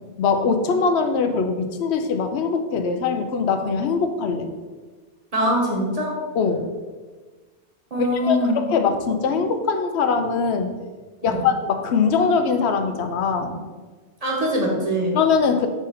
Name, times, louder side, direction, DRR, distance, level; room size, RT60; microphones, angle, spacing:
voice 1, 0.2-4.5 6.4-6.7 8.2-10.8 11.2-13.7 15.1-15.7, left 5 dB, 75° left, 7 dB, 0.9 m, -22 dB
voice 2, 5.3-6.1 7.9-8.6 11.2-11.5 14.2-15.2, equal, 35° right, -2 dB, 1.3 m, -22 dB
6.1 x 3.8 x 4.1 m, 1.4 s
omnidirectional pair, 1.1 m